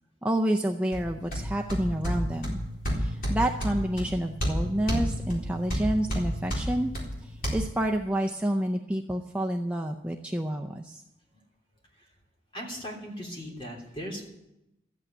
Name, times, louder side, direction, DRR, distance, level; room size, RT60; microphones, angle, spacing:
voice 1, 0.2-2.6 3.0-6.9 7.2-11.0, right 1 dB, 5° right, 1 dB, 0.5 m, -29 dB
sound 1, 0.9-7.5, equal, 50° left, 4.0 m, -31 dB
voice 2, 12.5-14.2, equal, 30° left, -1 dB, 3.3 m, -38 dB
13.5 x 8.5 x 9.0 m, 0.91 s
head